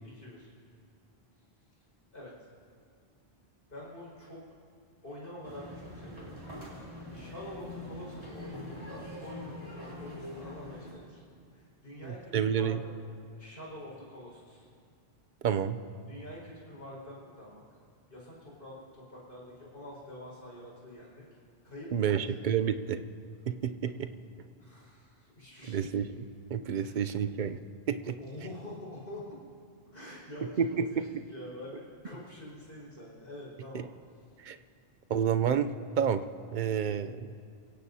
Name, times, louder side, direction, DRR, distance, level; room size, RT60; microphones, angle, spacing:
voice 1, 0.0-0.5 2.1-2.3 3.7-4.4 5.0-6.4 7.1-11.2 11.5-13.0 13.3-14.7 16.1-17.6 18.1-21.2 21.6-22.7 24.6-25.8 26.7-27.0 28.2-29.4 29.9-33.9, left 1 dB, 65° left, -5 dB, 5.6 m, -46 dB
sound 1, 5.4-10.9, left 1 dB, 25° right, 3.7 m, -43 dB
voice 2, 12.3-12.8 15.4-15.8 21.9-23.0 23.5-24.1 25.7-26.2 26.5-27.6 27.9-28.2 30.6-31.0 33.7-33.8 34.5-34.6 35.1-36.2 36.5-37.3, right 8 dB, 55° right, 10 dB, 0.7 m, -29 dB
26.5 x 16.5 x 2.8 m, 2.3 s
omnidirectional pair, 1.1 m